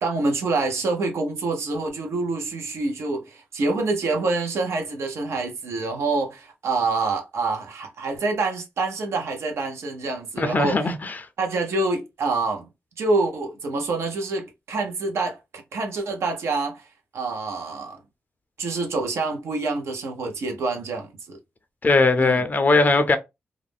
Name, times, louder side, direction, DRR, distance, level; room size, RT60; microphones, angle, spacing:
voice 1, 0.0-10.9 11.4-12.7 13.0-16.9 17.1-18.0 18.6-21.4 22.2-22.4, right 3 dB, 75° right, 0.7 m, -26 dB
voice 2, 10.4-11.2 21.8-23.2, left 3 dB, 40° left, 0.5 m, -19 dB
2.4 x 2.0 x 3.4 m
cardioid pair, 55°, 5 cm